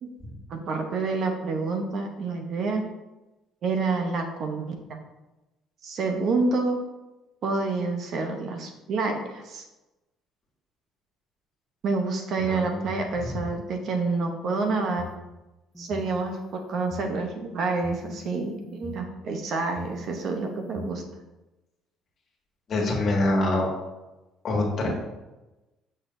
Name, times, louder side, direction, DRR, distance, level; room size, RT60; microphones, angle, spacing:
voice 1, 0.5-2.8 3.6-5.0 5.8-6.8 7.4-9.6 11.8-15.1 15.8-21.0, right 3 dB, 45° right, 4 dB, 0.8 m, -28 dB
voice 2, 12.4-12.9 13.2-13.3 22.7-23.7 24.4-24.9, left 2 dB, 40° left, -1 dB, 1.8 m, -25 dB
sound 1, 14.5-15.2 15.7-17.1 17.7-19.0 19.6-20.9, left 2 dB, ahead, 0.8 m, -42 dB
7.6 x 6.4 x 2.6 m, 1.0 s
cardioid pair, 160°, 0 cm